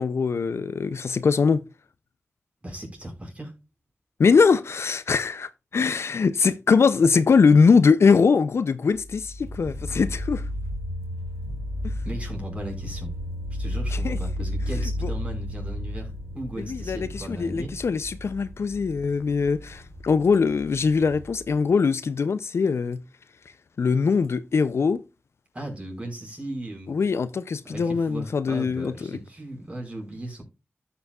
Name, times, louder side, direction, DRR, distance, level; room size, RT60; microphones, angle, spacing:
voice 1, 0.0-1.6 4.2-10.4 11.8-11.9 14.0-14.2 15.0-15.1 16.6-23.0 23.8-25.0 26.9-29.2, left 5 dB, 75° left, 0.4 m, -22 dB
voice 2, 2.6-3.5 12.0-13.1 13.5-17.7 25.5-27.1 27.6-30.4, right 1 dB, 30° right, 4.6 m, -36 dB
sound 1, 8.9-21.7, left 1 dB, 30° left, 2.9 m, -33 dB
sound 2, 9.4-21.4, right 1 dB, 75° right, 2.2 m, -43 dB
13.5 x 5.9 x 2.3 m
cardioid pair, 50°, 5 cm